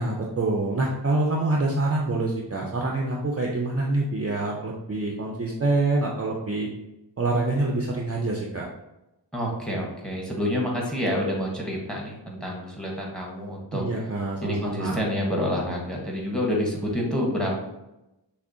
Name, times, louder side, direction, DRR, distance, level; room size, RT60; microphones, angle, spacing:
voice 1, 0.0-6.7 7.2-8.7 13.7-15.0, right 2 dB, 35° right, -2 dB, 0.5 m, -26 dB
voice 2, 9.3-13.8 14.4-17.5, equal, ahead, -2 dB, 1.0 m, -28 dB
6.0 x 2.1 x 2.6 m, 0.93 s
wide cardioid pair, 80°, 43 cm